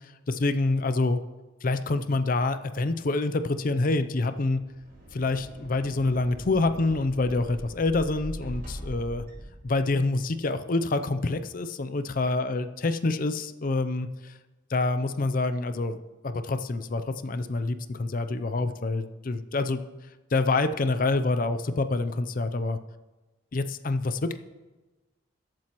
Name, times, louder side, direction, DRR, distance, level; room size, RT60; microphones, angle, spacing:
voice 1, 0.3-1.2 1.6-4.6 5.1-9.2 9.6-14.3 14.7-19.8 20.3-22.8 23.5-24.4, left 2 dB, 45° left, 10 dB, 0.5 m, -27 dB
sound 1, 4.6-10.2, equal, 50° right, 4.1 m, -42 dB
21.0 x 7.6 x 3.0 m, 1.2 s
head